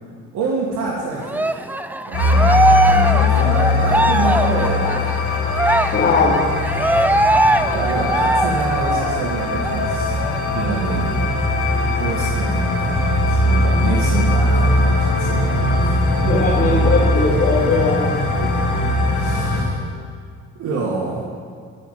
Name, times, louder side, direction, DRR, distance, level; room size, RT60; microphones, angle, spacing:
voice 1, 0.3-1.7 2.1-5.2 5.6-5.9 7.7-10.3 10.5-11.2 12.0-16.1 16.6-16.7 18.4-18.8 19.1-19.8 20.6-21.3, right 3 dB, 80° right, -5 dB, 2.1 m, -27 dB
Cheering, 1.3-9.3 9.6-9.8 10.2-11.2, right 2 dB, 5° right, 0.5 m, -20 dB
sound 1, 2.1-19.6, left 2 dB, 80° left, 3.7 m, -20 dB
voice 2, 5.9-6.4 16.2-18.1, left 3 dB, 45° left, -7 dB, 2.6 m, -19 dB
14.5 x 5.7 x 8.4 m, 2.1 s
cardioid pair, 90°, 30 cm